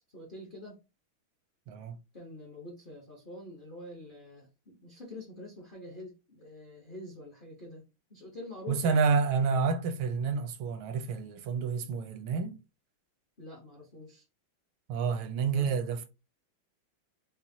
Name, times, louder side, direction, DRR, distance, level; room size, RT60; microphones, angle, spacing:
voice 1, 0.1-0.8 2.1-9.0 13.4-14.2 15.5-15.8, left 1 dB, 45° left, 0.7 m, -46 dB
voice 2, 8.7-12.6 14.9-16.1, right 5 dB, 80° right, 1.4 m, -29 dB
6.1 x 2.0 x 2.6 m
omnidirectional pair, 2.3 m